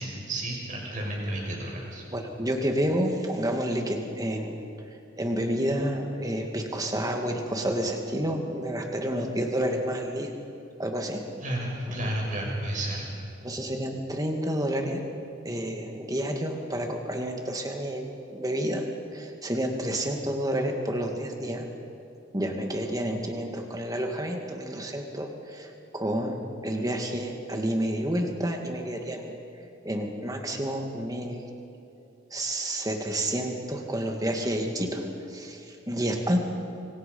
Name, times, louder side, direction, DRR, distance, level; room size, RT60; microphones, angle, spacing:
voice 1, 0.0-2.0 11.4-13.0, right 1 dB, 40° right, -2 dB, 6.6 m, -32 dB
voice 2, 2.1-4.6 5.2-10.3 10.8-11.2 13.4-15.0 15.4-18.8 19.1-21.7 22.3-29.3 29.8-31.4 32.3-36.4, right 1 dB, 20° right, 3 dB, 2.3 m, -29 dB
25.5 x 25.0 x 5.6 m, 2.7 s
head